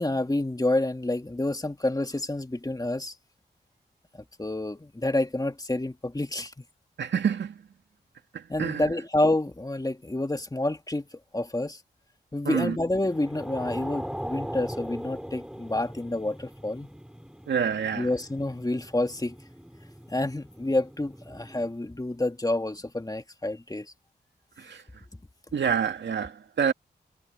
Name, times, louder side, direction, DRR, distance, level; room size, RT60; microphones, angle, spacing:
voice 1, 0.0-3.1 4.1-6.5 8.5-11.1 11.3-11.8 12.3-16.9 17.9-19.4 20.1-23.9, left 2 dB, 20° left, 2.5 m, -28 dB
voice 2, 7.0-7.6 8.3-8.9 12.4-12.8 17.5-18.1 24.6-24.8 25.5-26.7, right 7 dB, 80° right, 2.5 m, -27 dB
sound 1, 13.0-21.7, equal, 5° right, 5.4 m, -40 dB
cardioid pair, 50°, 18 cm